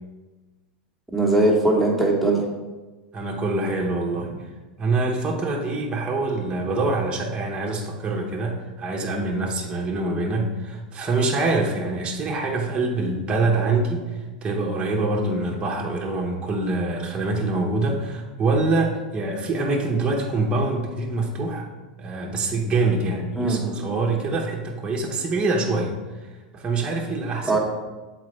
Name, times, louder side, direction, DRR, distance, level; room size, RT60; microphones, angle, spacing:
voice 1, 1.1-2.4 23.3-23.6 27.4-27.6, right 2 dB, ahead, -4 dB, 1.3 m, -20 dB
voice 2, 3.1-4.5 4.8-14.1 14.4-21.7 22.0-25.9 26.5-27.6, right 3 dB, 20° right, -1 dB, 1.0 m, -25 dB
7.3 x 4.3 x 3.2 m, 1.2 s
hypercardioid pair, 105°, 5 cm